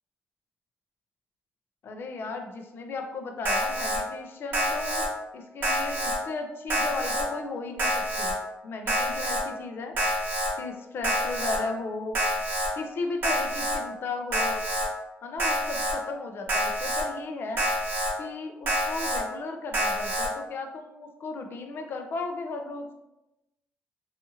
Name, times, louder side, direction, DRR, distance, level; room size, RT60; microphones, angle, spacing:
voice 1, 1.8-5.1 5.3-8.3 8.6-9.9 10.6-12.2 12.7-14.6 15.2-17.7 18.2-22.9, left 3 dB, 55° left, 4 dB, 0.4 m, -35 dB
Alarm, 3.4-4.0 4.5-5.1 5.6-6.2 6.7-7.2 7.8-8.3 8.9-9.4 10.0-10.5 11.0-11.6 12.1-12.7 13.2-13.8 14.3-14.9 15.4-15.9 16.5-17.0 17.6-18.1 18.7-19.2 19.7-20.3, equal, 50° right, 0.9 m, -27 dB
2.6 x 2.4 x 2.8 m, 0.96 s
cardioid pair, 125°, 5 cm